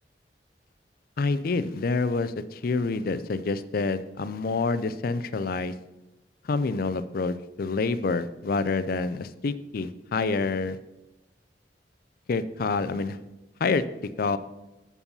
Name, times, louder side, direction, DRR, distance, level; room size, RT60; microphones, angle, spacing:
voice 1, 1.2-5.7 6.5-10.8 12.3-13.2 13.6-13.8 14.2-14.4, left 3 dB, 55° left, 14 dB, 0.5 m, -27 dB
7.1 x 7.0 x 5.4 m, 1.0 s
head